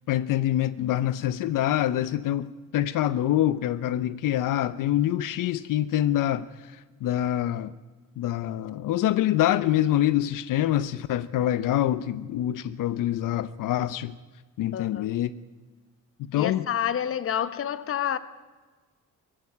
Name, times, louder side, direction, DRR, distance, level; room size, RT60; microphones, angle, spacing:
voice 1, 0.1-7.7 8.2-14.1 14.6-15.3 16.3-16.7, left 12 dB, 75° left, 0.8 m, -25 dB
voice 2, 14.7-15.1 16.3-18.2, left 9 dB, 45° left, 1.1 m, -28 dB
21.5 x 15.5 x 9.7 m
cardioid pair, 160°, 32 cm